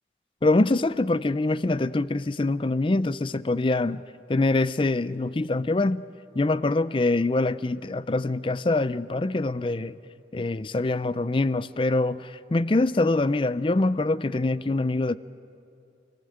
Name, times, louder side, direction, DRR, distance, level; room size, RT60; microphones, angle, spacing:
voice 1, 0.4-4.0 4.3-6.0 6.3-10.0 10.3-15.2, left 2 dB, 30° left, 0.5 m, -24 dB
29.0 x 18.5 x 7.9 m
head